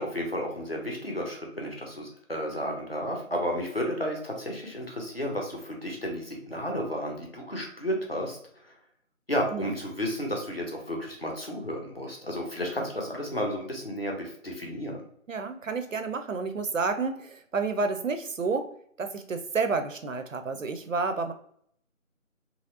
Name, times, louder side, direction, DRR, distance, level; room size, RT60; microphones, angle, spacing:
voice 1, 0.0-8.4 8.6-8.7 9.3-15.0, equal, 45° left, 0 dB, 0.7 m, -32 dB
voice 2, 15.3-18.7 19.0-21.3, right 4 dB, 70° right, 8 dB, 0.5 m, -30 dB
2.8 x 2.7 x 2.6 m, 0.65 s
figure-of-eight pair, 175°, 41 cm